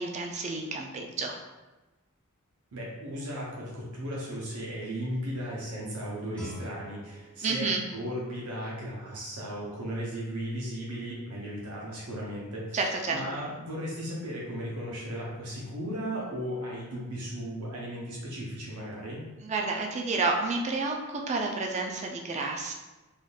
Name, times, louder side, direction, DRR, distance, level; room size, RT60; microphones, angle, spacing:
voice 1, 0.0-1.4 7.4-7.8 12.7-13.2 19.4-22.7, right 3 dB, 30° right, 2 dB, 0.4 m, -30 dB
voice 2, 2.7-12.8 13.1-19.2, equal, 85° right, -5 dB, 0.7 m, -36 dB
Guitar, 6.3-9.1, equal, 5° left, 0.7 m, -46 dB
3.5 x 2.5 x 2.2 m, 1.1 s
head